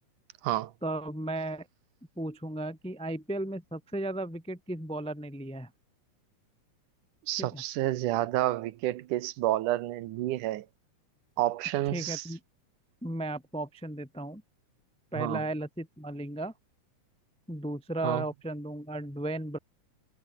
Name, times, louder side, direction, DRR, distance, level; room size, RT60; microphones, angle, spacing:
voice 1, 0.8-1.7 2.2-5.7 7.4-7.6 11.9-12.4 13.0-14.4 15.1-16.5 17.5-19.6, right 1 dB, 5° left, 0.6 m, -35 dB
voice 2, 7.3-10.7 11.4-12.2 15.2-15.4 18.0-18.2, right 15 dB, 85° right, 2.5 m, -29 dB
omnidirectional pair, 3.6 m